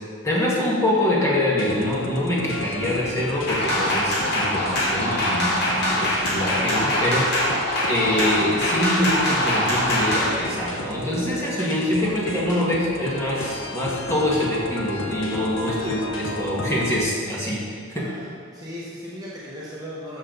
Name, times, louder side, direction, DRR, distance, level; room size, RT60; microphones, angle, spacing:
voice 1, 0.2-7.5 7.8-17.6 17.9-18.1, left 1 dB, 15° left, -6 dB, 2.0 m, -24 dB
sound 1, 1.5-17.0, left 2 dB, 75° left, 1.1 m, -33 dB
sound 2, 3.5-10.3, left 1 dB, 50° left, 2.5 m, -23 dB
voice 2, 17.9-18.3 18.5-20.2, equal, 20° right, -7 dB, 1.2 m, -37 dB
13.0 x 6.8 x 4.1 m, 2.2 s
head